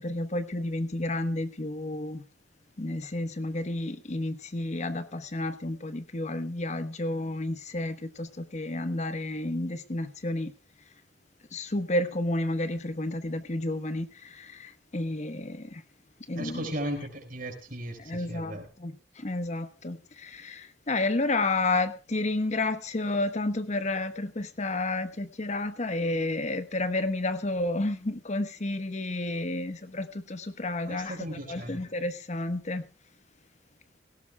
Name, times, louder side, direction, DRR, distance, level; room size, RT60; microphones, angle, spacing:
voice 1, 0.0-2.2 2.8-10.5 11.5-15.8 16.3-16.7 18.0-31.2 31.5-32.8, left 2 dB, 40° left, 1.0 m, -31 dB
voice 2, 16.4-18.7 30.8-31.8, right 1 dB, 50° right, 4.7 m, -36 dB
17.5 x 17.0 x 2.2 m
head